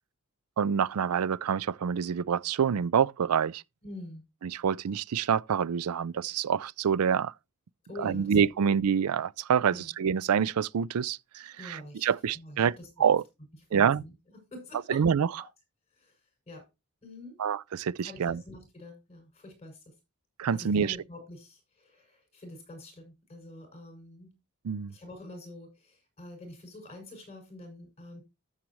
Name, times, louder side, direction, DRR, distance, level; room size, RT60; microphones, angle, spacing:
voice 1, 0.6-3.6 4.4-7.3 8.0-12.7 13.0-13.2 13.7-14.0 14.9-15.3 17.4-18.4 20.4-21.0 24.6-24.9, right 7 dB, 80° right, 0.4 m, -27 dB
voice 2, 3.8-4.2 7.9-8.6 9.7-9.9 11.6-13.2 13.7-15.0 15.4-15.5 15.9-16.2 16.5-16.7 17.0-17.4 18.0-19.9 20.5-24.3 24.9-28.2, left 1 dB, 30° left, 6.6 m, -46 dB
13.0 x 7.4 x 3.1 m
head